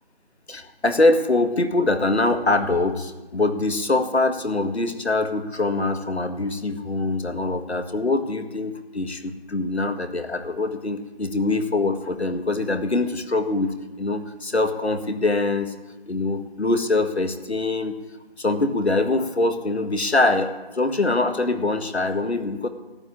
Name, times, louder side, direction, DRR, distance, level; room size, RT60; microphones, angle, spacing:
voice 1, 0.5-15.7 16.1-17.9 18.4-22.7, left 2 dB, 80° left, 8 dB, 1.8 m, -23 dB
13.0 x 8.8 x 9.8 m, 1.2 s
figure-of-eight pair, 175°, 32 cm